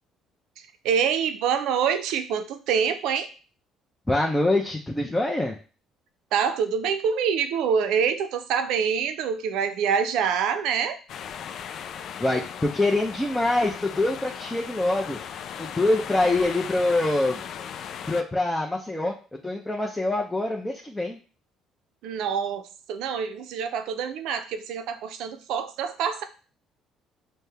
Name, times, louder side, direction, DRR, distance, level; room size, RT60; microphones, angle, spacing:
voice 1, 0.8-3.3 6.3-11.0 22.0-26.2, right 7 dB, 75° right, 8 dB, 0.5 m, -26 dB
voice 2, 4.1-5.6 12.2-15.2 15.6-17.4 17.7-19.2 19.4-21.2, left 2 dB, 10° left, 0 dB, 0.7 m, -25 dB
sound 1, 11.1-18.2, left 8 dB, 65° left, 0.3 m, -37 dB
5.4 x 2.2 x 3.4 m, 0.36 s
supercardioid pair, 75°, 0 cm